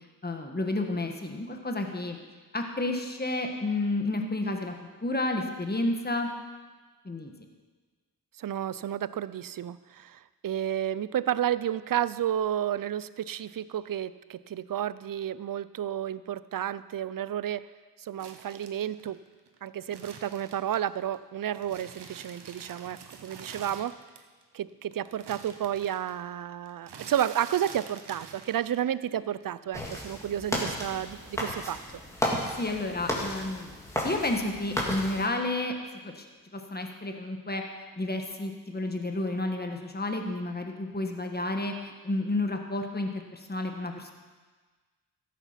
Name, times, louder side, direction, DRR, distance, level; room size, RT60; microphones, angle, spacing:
voice 1, 0.2-2.2 2.5-4.7 5.0-6.3 7.0-7.3 32.2-33.7 34.0-35.7 36.0-36.2 36.5-37.6 38.0-44.1, left 2 dB, 25° left, 4 dB, 1.5 m, -31 dB
voice 2, 8.4-17.7 18.0-19.2 19.6-23.9 24.5-31.8, right 10 dB, 55° right, 17 dB, 0.5 m, -31 dB
sound 1, 18.2-21.2 21.5-24.4 24.7-29.0 29.3-30.2, right 5 dB, 85° right, 1.1 m, -47 dB
sound 2, 29.7-35.3, equal, 5° left, 3.0 m, -33 dB
13.5 x 8.2 x 5.8 m, 1.4 s
cardioid pair, 45°, 40 cm